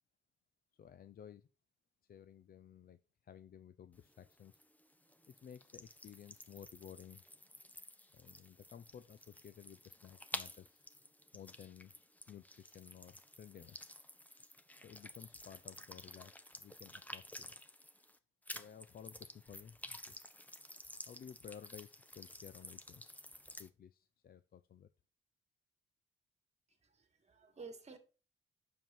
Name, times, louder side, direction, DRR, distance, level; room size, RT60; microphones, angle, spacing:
voice 1, 0.8-1.5 2.1-4.6 5.3-7.2 8.1-10.9 11.3-11.9 12.3-13.9 14.8-17.5 18.5-20.3 21.1-24.9, left 9 dB, 50° left, 0.6 m, -55 dB
sound 1, 3.9-18.2 18.5-23.7, left 1 dB, 10° left, 1.1 m, -52 dB
voice 2, 26.8-28.0, right 4 dB, 35° right, 2.4 m, -52 dB
9.2 x 7.3 x 4.5 m
cardioid pair, 90°, 20 cm